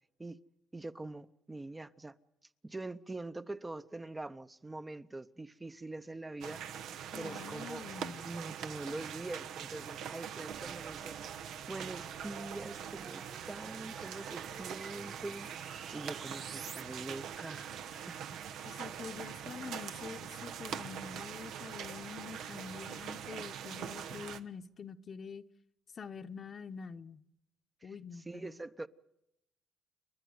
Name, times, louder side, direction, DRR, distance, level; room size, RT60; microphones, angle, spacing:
voice 1, 0.7-2.2 2.6-6.6 7.2-7.8 8.2-11.2 11.7-18.4 27.8-28.9, right 2 dB, 20° right, 0.8 m, -44 dB
sound 1, 6.4-24.4, right 8 dB, 85° right, 1.0 m, -43 dB
voice 2, 7.1-8.3 18.6-25.4 25.9-27.2 27.8-28.5, left 6 dB, 45° left, 1.0 m, -46 dB
sound 2, 10.5-16.8, right 6 dB, 55° right, 1.2 m, -51 dB
29.5 x 11.0 x 9.5 m
cardioid pair, 90°, 0 cm